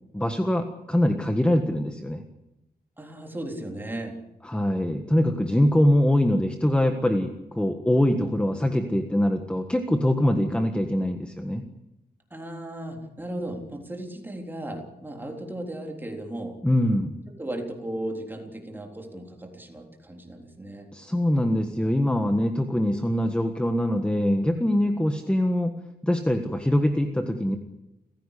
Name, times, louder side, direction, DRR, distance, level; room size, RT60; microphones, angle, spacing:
voice 1, 0.1-2.2 4.5-11.6 16.6-17.1 20.9-25.7 26.0-27.6, left 1 dB, 5° left, 6 dB, 1.5 m, -23 dB
voice 2, 3.0-4.2 12.3-16.6 17.3-20.9, right 1 dB, 10° right, 2 dB, 3.7 m, -36 dB
29.5 x 16.0 x 8.5 m, 0.92 s
wide cardioid pair, 170°, 17 cm